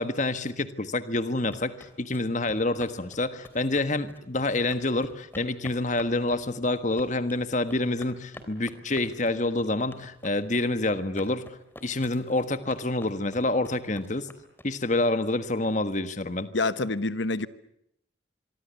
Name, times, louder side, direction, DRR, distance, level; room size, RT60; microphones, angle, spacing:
voice 1, 0.0-11.5 11.8-14.3 14.6-16.5, left 2 dB, 40° left, 11 dB, 1.5 m, -27 dB
sound 1, 1.2-15.0, left 1 dB, 10° left, 3.3 m, -49 dB
voice 2, 16.5-17.5, left 3 dB, 70° left, 14 dB, 1.1 m, -27 dB
25.5 x 24.5 x 8.3 m, 0.76 s
head